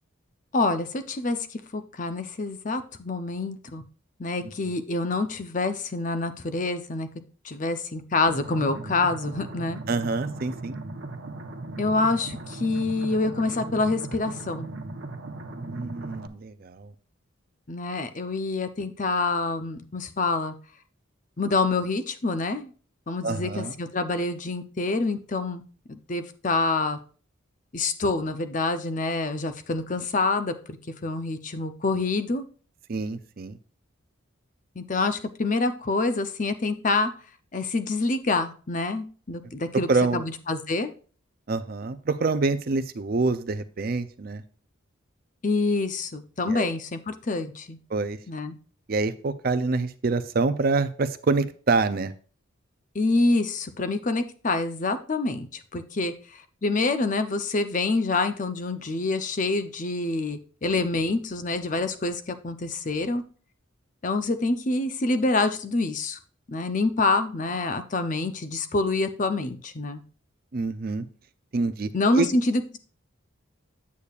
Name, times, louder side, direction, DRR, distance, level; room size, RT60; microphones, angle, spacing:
voice 1, 0.5-3.8 4.2-7.1 7.4-9.8 11.8-14.7 17.7-20.5 21.4-22.7 23.1-25.6 25.9-27.0 27.7-30.8 31.0-32.5 34.8-37.1 37.5-40.9 45.4-47.8 48.3-48.6 52.9-55.5 55.7-56.1 56.6-63.2 64.0-66.2 66.5-70.0 71.9-72.8, left 3 dB, 35° left, 10 dB, 0.6 m, -26 dB
sound 1, 8.3-16.3, right 2 dB, 65° right, 0.9 m, -38 dB
voice 2, 9.9-10.8 15.5-16.9 23.2-23.7 32.9-33.6 39.9-40.2 41.5-44.4 46.5-46.7 47.9-48.2 48.9-52.1 70.5-71.0 71.5-71.9 72.2-72.3, right 3 dB, 45° right, 12 dB, 0.5 m, -26 dB
8.4 x 8.3 x 2.4 m, 0.40 s
head